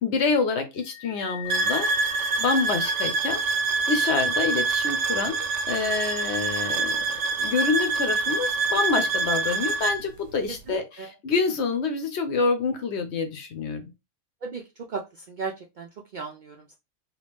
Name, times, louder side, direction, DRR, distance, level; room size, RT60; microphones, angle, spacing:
voice 1, 0.0-3.4 3.9-13.9, left 4 dB, 65° left, 7 dB, 1.0 m, -27 dB
sound 1, 0.8-3.5, left 10 dB, ahead, 1.0 m, -41 dB
sound 2, 1.5-10.0, right 3 dB, 75° right, 0.9 m, -26 dB
voice 2, 10.7-11.1 14.4-14.6 14.9-15.0 15.3-16.8, right 5 dB, 60° right, 1 dB, 0.5 m, -36 dB
2.9 x 2.5 x 3.4 m, 0.24 s
omnidirectional pair, 1.3 m